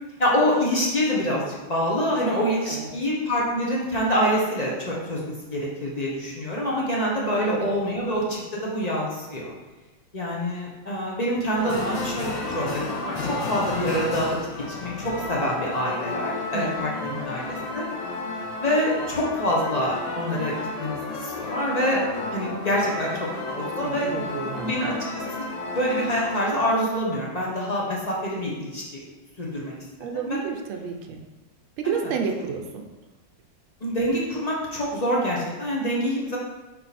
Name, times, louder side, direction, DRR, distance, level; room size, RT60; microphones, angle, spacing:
voice 1, 0.2-9.5 10.1-17.9 18.6-22.0 22.3-24.1 24.6-25.2 25.7-29.0 29.4-29.7 30.2-30.4 31.8-32.1 33.8-36.4, equal, 30° left, -4 dB, 0.7 m, -26 dB
voice 2, 7.4-7.8 16.5-17.2 23.6-25.0 30.0-31.3 31.8-32.9, right 6 dB, 80° right, 3 dB, 1.5 m, -31 dB
sound 1, 11.6-26.5, left 3 dB, 75° left, 1.6 m, -32 dB
5.2 x 4.5 x 4.2 m, 1.1 s
omnidirectional pair, 2.3 m